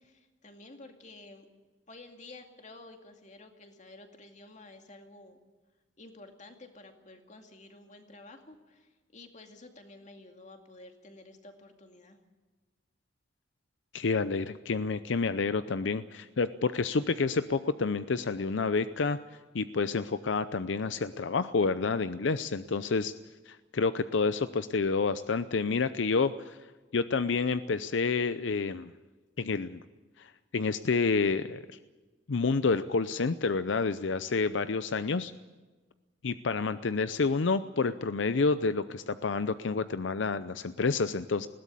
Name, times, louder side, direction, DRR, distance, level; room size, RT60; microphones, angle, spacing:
voice 1, 0.0-1.5 1.9-5.4 6.0-12.2, left 2 dB, 40° left, 4 dB, 2.3 m, -51 dB
voice 2, 13.9-19.2 19.5-23.1 23.5-26.6 26.9-28.9 29.4-29.8 30.2-31.6 32.3-35.3 36.2-41.5, left 4 dB, 80° left, 13 dB, 0.6 m, -29 dB
20.0 x 16.5 x 8.4 m, 1.3 s
head